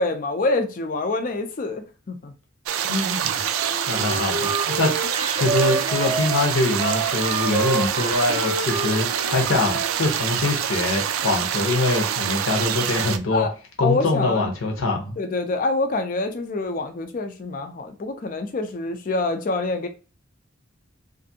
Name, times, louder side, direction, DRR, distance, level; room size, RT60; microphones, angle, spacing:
voice 1, 0.0-2.3 13.3-13.5 13.8-14.5 15.2-19.9, left 2 dB, 40° left, 0.4 m, -26 dB
sound 1, 2.7-13.2, right 9 dB, 75° right, 0.3 m, -26 dB
voice 2, 2.8-3.6 3.9-4.9 5.3-13.5 13.8-15.2, left 2 dB, 80° left, 0.8 m, -24 dB
Wind instrument woodwind instrument, 3.6-9.9, right 3 dB, 20° right, 0.6 m, -28 dB
2.6 x 2.5 x 2.6 m
head